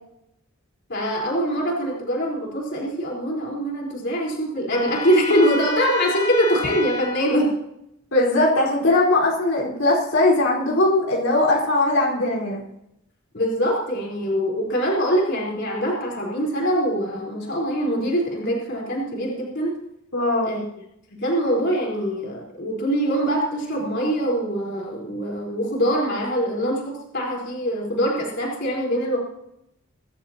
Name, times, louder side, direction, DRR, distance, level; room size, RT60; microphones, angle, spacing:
voice 1, 0.9-7.5 13.3-19.7 20.4-20.6 21.1-29.2, equal, 55° left, -3 dB, 4.5 m, -23 dB
Trumpet, 4.7-7.2, left 3 dB, 30° left, 2.9 m, -30 dB
voice 2, 8.1-12.6 20.1-20.6, left 2 dB, 75° left, -4 dB, 4.7 m, -20 dB
23.5 x 12.5 x 3.0 m, 0.80 s
head